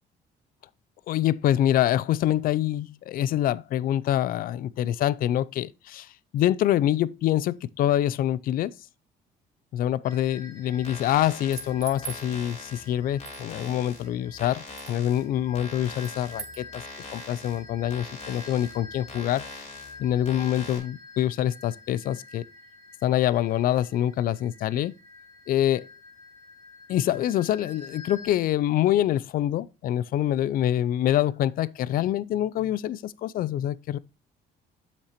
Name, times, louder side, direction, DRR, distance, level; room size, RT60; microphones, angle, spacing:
voice 1, 1.1-6.1 6.3-8.7 9.7-16.8 17.1-19.7 20.0-22.4 23.0-24.9 25.5-25.9 26.9-34.0, left 12 dB, 60° left, 0.4 m, -25 dB
sound 1, 10.0-28.3, left 3 dB, 15° left, 3.8 m, -48 dB
sound 2, 10.8-20.8, left 3 dB, 40° left, 3.2 m, -44 dB
sound 3, 11.4-12.3 13.2-13.4 14.8-15.0 16.0-16.6, right 7 dB, 40° right, 0.8 m, -39 dB
8.0 x 5.9 x 2.9 m
cardioid pair, 110°, 17 cm